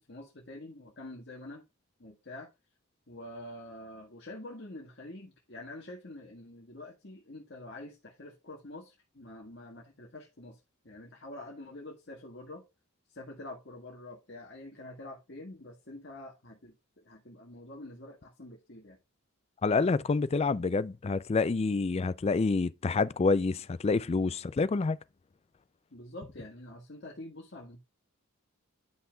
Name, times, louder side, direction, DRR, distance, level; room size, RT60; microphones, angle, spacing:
voice 1, 0.0-1.6 2.0-2.5 3.1-10.6 10.8-12.6 13.1-19.0 19.7-19.9 25.9-27.8, left 1 dB, 55° left, 1.7 m, -46 dB
voice 2, 19.6-25.0, left 4 dB, 30° left, 0.3 m, -27 dB
11.0 x 5.6 x 2.3 m
head